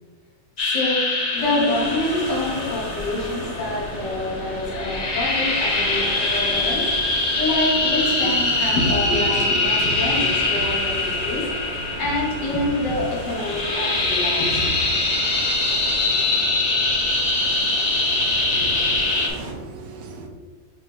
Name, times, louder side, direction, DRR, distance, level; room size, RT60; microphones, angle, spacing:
voice 1, 0.6-14.7, left 1 dB, 80° left, -4 dB, 2.3 m, -26 dB
sound 1, 0.6-19.3, left 2 dB, 40° left, 0.6 m, -23 dB
sound 2, 1.4-19.5, right 2 dB, 50° right, 1.0 m, -35 dB
voice 2, 18.5-20.3, right 2 dB, 85° right, 3 dB, 1.5 m, -37 dB
5.8 x 3.8 x 4.6 m, 1.4 s
omnidirectional pair, 1.9 m